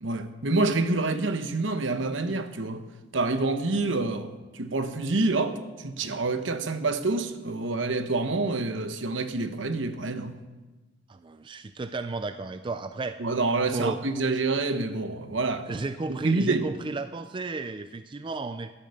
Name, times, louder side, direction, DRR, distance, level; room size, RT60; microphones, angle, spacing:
voice 1, 0.0-2.8 3.1-10.4 13.2-15.8 16.1-16.7, right 3 dB, 65° right, 1.0 m, -27 dB
voice 2, 11.1-13.2 13.7-14.0 15.7-18.7, right 3 dB, 25° right, 0.4 m, -33 dB
12.5 x 10.5 x 6.6 m
head